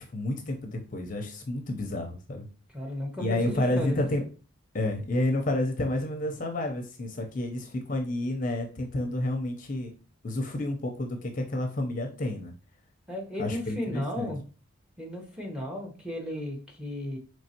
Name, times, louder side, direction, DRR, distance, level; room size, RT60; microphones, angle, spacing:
voice 1, 0.0-2.5 3.2-4.2 4.7-9.9 10.2-12.5 13.4-14.3, left 1 dB, 40° left, 4 dB, 0.5 m, -30 dB
voice 2, 2.7-4.1 13.1-14.4 15.0-17.2, left 1 dB, 5° right, 0 dB, 0.8 m, -35 dB
4.3 x 3.2 x 2.8 m, 0.36 s
head